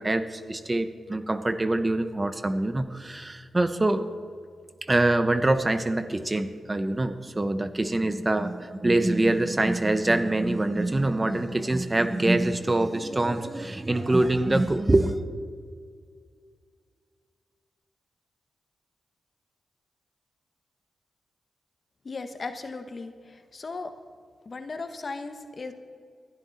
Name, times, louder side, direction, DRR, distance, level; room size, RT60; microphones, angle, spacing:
voice 1, 0.0-4.0 4.8-15.2, right 2 dB, 25° right, 10 dB, 1.0 m, -24 dB
voice 2, 22.0-23.9 24.4-25.7, left 3 dB, 50° left, 8 dB, 1.4 m, -37 dB
21.0 x 12.0 x 4.3 m, 2.1 s
cardioid pair, 65°, 0 cm